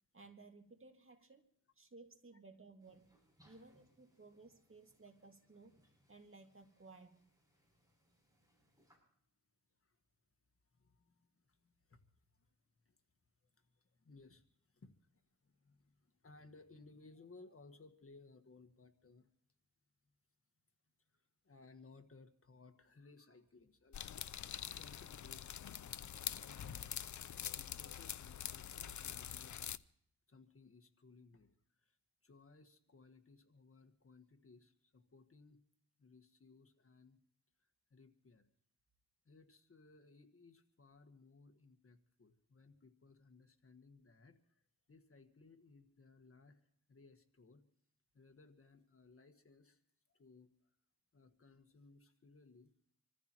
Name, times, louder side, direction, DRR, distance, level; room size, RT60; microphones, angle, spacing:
voice 1, 0.1-1.5 1.8-3.2 3.4-5.8 6.1-7.3, right 3 dB, 40° right, 4 dB, 2.2 m, -59 dB
sound 1, 2.8-9.0, equal, 10° right, 7.8 m, -74 dB
voice 2, 8.4-9.0 9.7-10.0 10.6-12.5 12.8-13.0 13.4-19.3 21.0-26.8 27.1-29.7 30.3-32.0 32.2-35.6 36.0-37.2 37.6-38.5 39.2-44.6 44.9-47.6 48.1-49.8 50.1-50.7 51.1-52.7, left 3 dB, 40° left, 7 dB, 1.6 m, -63 dB
sound 2, 23.9-29.8, left 9 dB, 60° left, 0.6 m, -45 dB
27.0 x 14.5 x 3.0 m, 0.68 s
cardioid pair, 70°, 33 cm